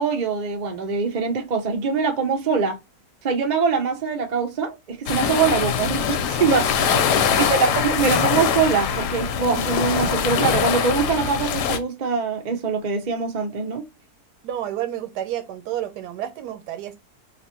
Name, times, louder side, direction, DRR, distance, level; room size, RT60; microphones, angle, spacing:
voice 1, 0.0-2.8 3.2-6.7 7.4-13.9, right 5 dB, 60° right, 0.4 m, -23 dB
sound 1, 5.1-11.8, left 7 dB, 90° left, 1.2 m, -22 dB
voice 2, 6.8-7.4 14.4-17.0, right 11 dB, 85° right, 1.2 m, -30 dB
2.9 x 2.5 x 4.2 m
omnidirectional pair, 1.7 m